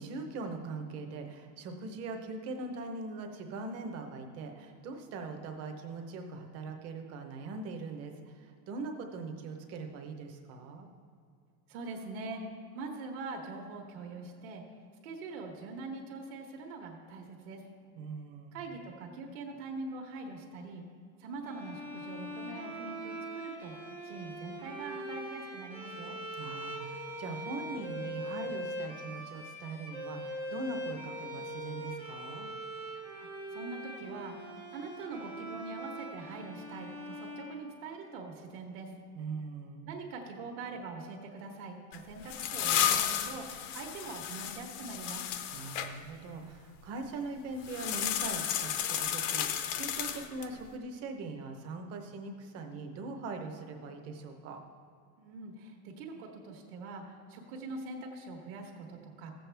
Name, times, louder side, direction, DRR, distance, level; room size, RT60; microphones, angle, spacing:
voice 1, 0.0-10.9 18.0-18.6 26.4-32.5 39.1-39.9 45.5-54.6, right 3 dB, 30° right, 4 dB, 0.8 m, -41 dB
voice 2, 11.7-12.4 12.7-14.6 15.0-17.6 18.5-20.8 21.2-23.7 24.0-26.2 33.2-34.3 34.7-38.9 39.9-45.2 55.2-59.3, right 3 dB, 65° right, 1 dB, 1.5 m, -43 dB
sound 1, 21.4-38.3, right 1 dB, 5° right, 0.4 m, -42 dB
sound 2, 41.9-45.9 47.6-50.6, left 10 dB, 70° left, 0.8 m, -33 dB
15.0 x 7.8 x 3.4 m, 2.3 s
cardioid pair, 180°, 46 cm